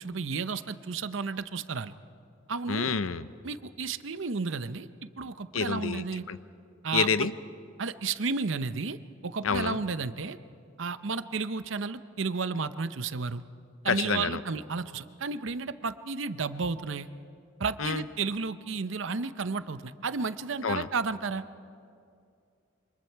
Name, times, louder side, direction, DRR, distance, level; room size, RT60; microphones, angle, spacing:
voice 1, 0.0-1.9 2.5-2.9 3.4-4.9 5.2-6.3 6.8-7.3 7.8-9.0 9.2-10.4 10.8-13.4 13.8-17.1 17.6-21.4, right 4 dB, 65° right, 12 dB, 0.7 m, -32 dB
voice 2, 2.7-3.3 5.5-6.4 6.9-7.3 9.4-9.8 13.9-14.4 17.8-18.0 20.6-20.9, left 5 dB, 80° left, 14 dB, 0.7 m, -28 dB
27.5 x 25.5 x 4.6 m, 2.4 s
head